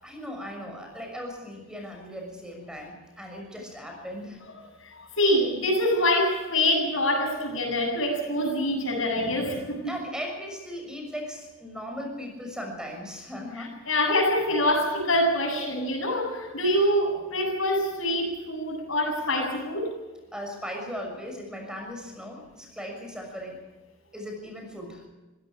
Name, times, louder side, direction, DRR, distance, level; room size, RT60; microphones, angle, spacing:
voice 1, 0.0-4.4 9.8-13.8 20.3-23.6 24.1-25.1, equal, 5° right, 2 dB, 6.3 m, -38 dB
voice 2, 4.8-9.9 13.9-19.9, left 1 dB, 75° left, 3 dB, 7.9 m, -25 dB
25.5 x 17.0 x 6.4 m, 1.2 s
head